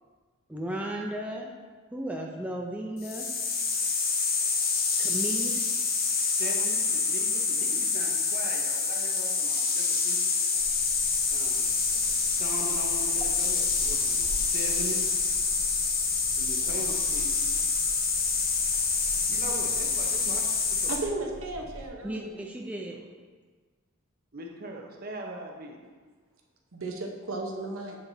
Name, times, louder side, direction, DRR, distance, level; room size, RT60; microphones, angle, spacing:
voice 1, 0.5-1.5 1.9-3.3 5.0-5.7 22.0-23.0, right 1 dB, 5° right, -1 dB, 0.5 m, -35 dB
sound 1, 3.0-21.0, left 4 dB, 45° left, 0.9 m, -27 dB
voice 2, 6.4-10.2 11.3-11.7 12.2-15.0 16.4-17.6 18.5-18.6 19.1-20.4 20.8-20.9 24.3-25.8, right 1 dB, 45° right, 1 dB, 0.9 m, -40 dB
sound 2, 10.5-21.9, equal, 10° left, 1.3 m, -44 dB
voice 3, 20.9-22.3 26.7-28.0, right 2 dB, 75° right, 0 dB, 1.0 m, -34 dB
7.9 x 6.9 x 2.7 m, 1.5 s
head